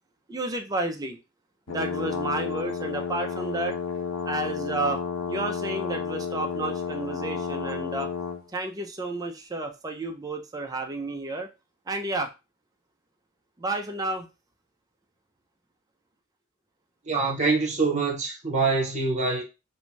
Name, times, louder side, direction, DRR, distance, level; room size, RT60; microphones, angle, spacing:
voice 1, 0.3-1.2 1.7-3.8 4.3-5.0 5.3-8.1 8.5-11.5 11.9-12.3 13.6-14.3, right 2 dB, 20° right, 0.4 m, -31 dB
sound 1, 1.7-8.4, left 5 dB, 85° left, 0.4 m, -31 dB
voice 2, 17.1-19.4, right 3 dB, 35° right, 0.9 m, -25 dB
2.5 x 2.3 x 3.0 m
head